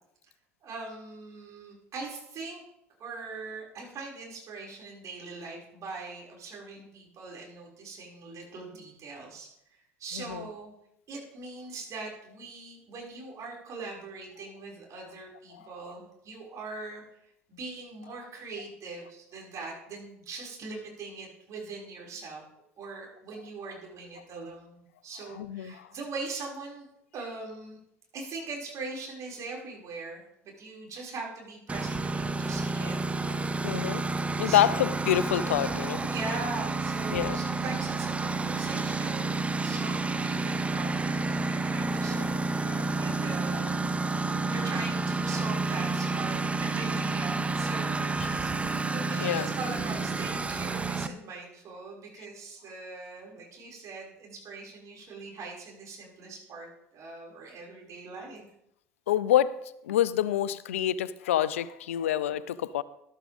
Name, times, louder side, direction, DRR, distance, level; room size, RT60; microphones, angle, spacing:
voice 1, 0.6-2.6 3.0-9.5 10.0-10.7 11.1-17.0 17.5-22.4 22.8-26.9 27.1-27.8 28.1-33.0 34.4-34.8 36.1-48.6 48.9-58.4, right 3 dB, 50° right, -2 dB, 5.9 m, -41 dB
voice 2, 25.4-25.9 33.6-34.1 34.4-36.0 37.1-37.4 42.7-43.0 44.1-44.2 48.2-48.8 49.2-49.5 59.1-62.8, left 11 dB, 80° left, 18 dB, 0.6 m, -27 dB
Engine, 31.7-51.1, right 3 dB, 20° right, 0.9 m, -30 dB
14.0 x 12.5 x 3.6 m, 0.77 s
hypercardioid pair, 70°, 7 cm